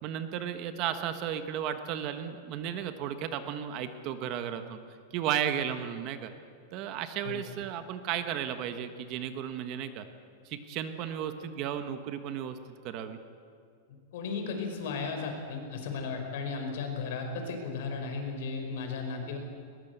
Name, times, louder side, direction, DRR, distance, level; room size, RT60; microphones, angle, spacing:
voice 1, 0.0-4.8 5.1-6.3 6.7-10.1 10.4-12.6 12.8-13.2, right 9 dB, 35° right, 9 dB, 1.2 m, -34 dB
voice 2, 14.1-19.4, left 4 dB, 60° left, 4 dB, 4.9 m, -35 dB
21.0 x 20.0 x 8.2 m, 2.3 s
supercardioid pair, 170°, 0 cm